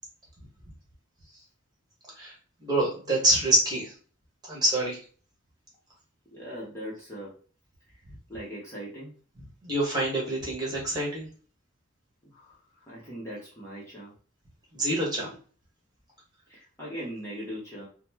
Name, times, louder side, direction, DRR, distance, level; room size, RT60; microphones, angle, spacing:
voice 1, 2.6-3.9 4.4-5.0 9.6-11.3 14.7-15.3, right 1 dB, 20° right, -5 dB, 1.3 m, -26 dB
voice 2, 6.3-7.3 7.9-8.0 8.3-9.1 12.2-14.1 16.5-17.9, equal, 15° left, -7 dB, 0.9 m, -40 dB
4.0 x 2.1 x 2.8 m, 0.41 s
head